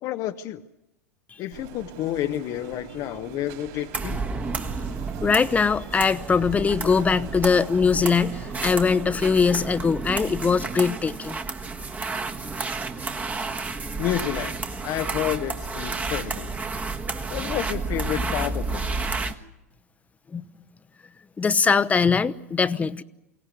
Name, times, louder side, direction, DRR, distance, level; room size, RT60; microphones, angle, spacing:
voice 1, 0.0-0.6 1.4-4.2 14.0-14.6 14.8-16.5 17.3-18.8, left 13 dB, 45° left, 9 dB, 0.9 m, -30 dB
sound 1, 1.5-9.0, right 9 dB, 55° right, 4.9 m, -43 dB
sound 2, 3.9-19.3, right 3 dB, 20° right, 1.4 m, -31 dB
voice 2, 5.2-11.4 20.3-20.4 21.4-23.0, left 5 dB, 15° left, 13 dB, 0.9 m, -21 dB
23.5 x 17.5 x 9.6 m, 0.91 s
hypercardioid pair, 90°, 8 cm